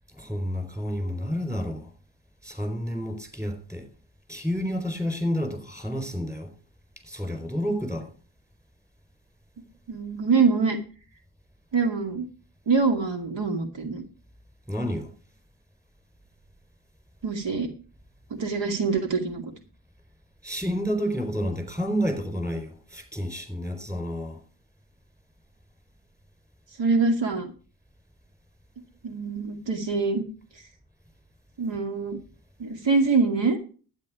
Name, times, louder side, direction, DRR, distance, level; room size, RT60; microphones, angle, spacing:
voice 1, 0.1-1.9 2.4-3.9 4.3-6.5 7.1-8.1 14.7-15.1 20.4-24.4, equal, 5° right, 4.3 m, -30 dB
voice 2, 9.9-10.8 11.7-12.2 12.7-14.0 17.2-17.7 18.3-19.5 26.8-27.5 29.0-30.2 31.6-32.2 32.6-33.6, right 4 dB, 75° right, 2.5 m, -24 dB
12.0 x 9.2 x 4.9 m
wide cardioid pair, 105°, 44 cm